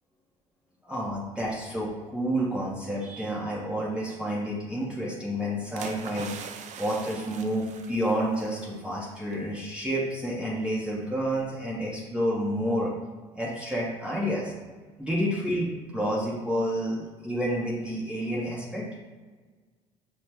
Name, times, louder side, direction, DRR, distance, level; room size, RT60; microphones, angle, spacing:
voice 1, 0.9-6.3 6.8-12.9 13.4-14.5 15.0-18.9, equal, 5° right, -6 dB, 1.0 m, -29 dB
sound 1, 5.8-8.8 9.1-9.3, right 6 dB, 50° right, 0.4 m, -42 dB
5.6 x 2.1 x 3.3 m, 1.4 s
hypercardioid pair, 60°, 16 cm